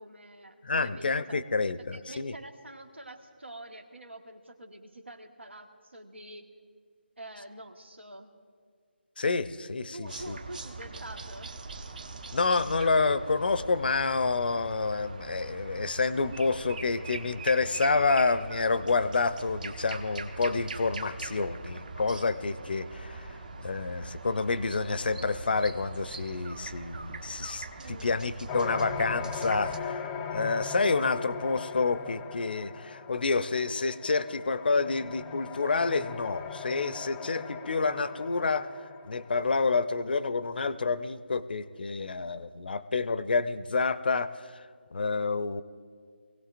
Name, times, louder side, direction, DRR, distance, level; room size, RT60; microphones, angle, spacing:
voice 1, 0.0-1.4 1.9-6.5 7.2-8.3 9.9-11.5 27.8-28.2, right 1 dB, 85° right, 5 dB, 1.6 m, -46 dB
voice 2, 0.6-2.3 9.2-10.4 12.3-38.7 39.1-44.6 44.9-45.6, left 4 dB, 55° left, 14 dB, 0.6 m, -28 dB
sound 1, 10.0-29.8, right 3 dB, 45° right, 1.0 m, -42 dB
sound 2, 28.5-39.9, left 6 dB, 10° left, 0.4 m, -39 dB
23.5 x 17.0 x 2.5 m, 2.1 s
figure-of-eight pair, 160°, 6 cm